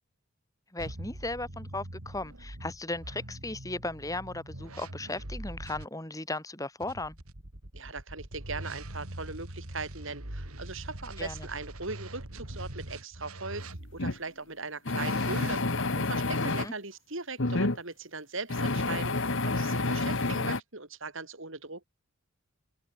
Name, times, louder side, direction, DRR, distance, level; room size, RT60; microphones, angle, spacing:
voice 1, 0.7-7.2 11.2-11.5 16.5-16.7, left 2 dB, 15° left, 4.5 m, -36 dB
sound 1, 0.8-5.9 6.8-14.2 14.9-15.6, right 1 dB, 80° right, 3.6 m, -43 dB
voice 2, 7.7-19.1 19.4-21.8, right 3 dB, 60° right, 3.6 m, -39 dB
sound 2, 14.0-14.2 14.9-16.7 17.4-17.8 18.5-20.6, left 2 dB, 55° left, 1.5 m, -29 dB
open air
head